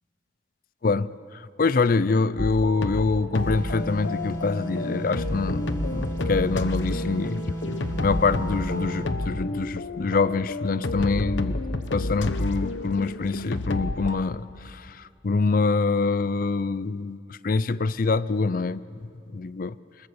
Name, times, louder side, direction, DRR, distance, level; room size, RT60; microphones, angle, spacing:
voice 1, 0.8-5.7 5.9-18.8 19.3-19.7, left 4 dB, 50° left, 0.5 m, -25 dB
sound 1, 2.4-14.2, left 2 dB, 85° left, 1.0 m, -30 dB
sound 2, 3.3-9.2, right 1 dB, 15° left, 5.6 m, -34 dB
25.5 x 21.0 x 7.0 m
head